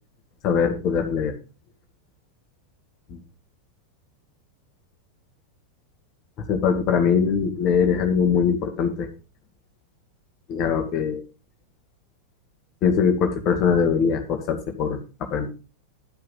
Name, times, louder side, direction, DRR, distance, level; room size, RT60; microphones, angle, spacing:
voice 1, 0.4-1.3 3.1-3.2 6.4-9.1 10.5-11.2 12.8-15.0 15.3-15.5, left 6 dB, 35° left, 5 dB, 1.8 m, -22 dB
11.5 x 5.6 x 5.5 m, 0.32 s
figure-of-eight pair, 90°, 0 cm